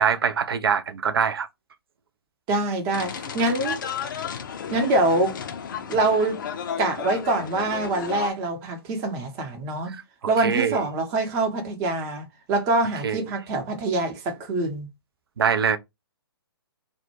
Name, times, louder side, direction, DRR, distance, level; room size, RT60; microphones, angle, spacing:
voice 1, 0.0-1.5 9.9-10.0 10.4-10.8 13.0-13.2 15.4-15.8, right 7 dB, 65° right, 0.4 m, -23 dB
voice 2, 2.5-3.8 4.7-5.4 5.9-6.4 6.8-9.9 10.3-14.9, right 2 dB, 25° right, 0.7 m, -25 dB
sound 1, 2.9-8.3, left 7 dB, 55° left, 0.4 m, -33 dB
2.1 x 2.1 x 2.9 m
figure-of-eight pair, 130°, 13 cm